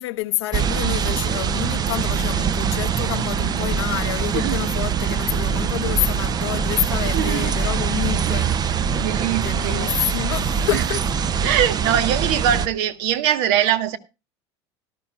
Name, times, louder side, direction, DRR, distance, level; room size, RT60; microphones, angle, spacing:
voice 1, 0.0-8.6 9.4-11.1 11.4-11.5, left 17 dB, 80° left, 0.9 m, -28 dB
sound 1, 0.5-12.7, right 7 dB, 30° right, 0.6 m, -23 dB
voice 2, 7.1-7.5 8.3-8.4 9.0-9.9 10.7-10.8 11.4-14.0, right 10 dB, 70° right, 1.2 m, -22 dB
18.0 x 12.0 x 2.3 m
supercardioid pair, 100°, 14 cm